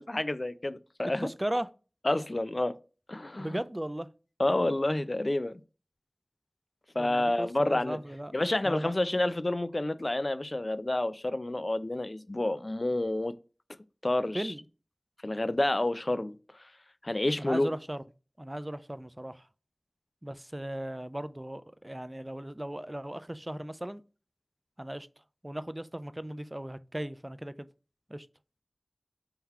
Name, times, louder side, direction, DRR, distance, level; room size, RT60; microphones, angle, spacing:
voice 1, 0.0-1.3 2.1-2.8 3.1-3.6 4.4-5.6 7.0-8.0 8.3-13.3 14.0-14.5 15.2-16.3 17.0-17.7, left 1 dB, 50° left, 0.4 m, -29 dB
voice 2, 1.2-1.7 3.4-4.1 7.0-8.3 8.6-8.9 14.3-14.6 17.4-18.0 18.4-19.4 20.2-24.0 24.8-25.1 25.4-27.7 28.1-28.3, right 1 dB, 25° right, 0.3 m, -37 dB
3.8 x 2.8 x 4.6 m
wide cardioid pair, 40°, 0 cm